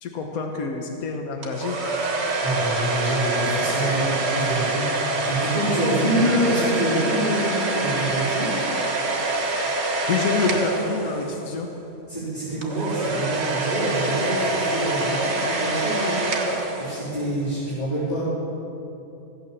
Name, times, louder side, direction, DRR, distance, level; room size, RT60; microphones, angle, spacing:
voice 1, 0.0-1.8 6.1-6.3 10.1-11.7, left 4 dB, 85° left, 2 dB, 1.5 m, -27 dB
sound 1, 1.4-11.5 12.6-17.3, right 2 dB, 50° right, 1.7 m, -25 dB
voice 2, 2.4-8.5 12.1-16.3 16.8-18.2, right 1 dB, 35° left, -13 dB, 4.5 m, -26 dB
15.0 x 9.2 x 7.3 m, 2.8 s
omnidirectional pair, 1.5 m